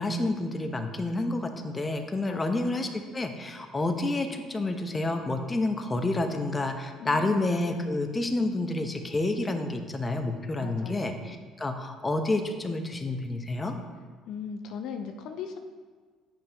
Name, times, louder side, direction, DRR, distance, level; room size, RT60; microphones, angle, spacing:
voice 1, 0.0-13.8, left 2 dB, 25° left, 6 dB, 0.8 m, -29 dB
voice 2, 2.3-2.9 7.0-7.5 10.6-11.2 14.3-15.6, left 7 dB, 70° left, 6 dB, 0.5 m, -39 dB
8.8 x 5.5 x 2.9 m, 1.5 s
supercardioid pair, 75°, 0 cm